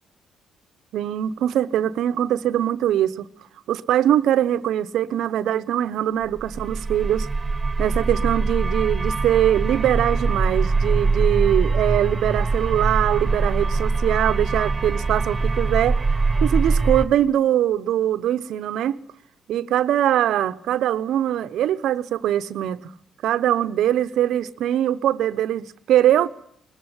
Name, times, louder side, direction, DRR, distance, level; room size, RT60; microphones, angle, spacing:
voice 1, 0.9-3.3 3.7-7.3 7.8-16.0 16.4-19.0 19.5-22.9 23.2-26.3, right 11 dB, 80° right, 0.9 m, -22 dB
sound 1, 6.4-17.0, right 3 dB, 25° right, 1.8 m, -23 dB
21.5 x 14.5 x 9.7 m
cardioid pair, 90°, 0 cm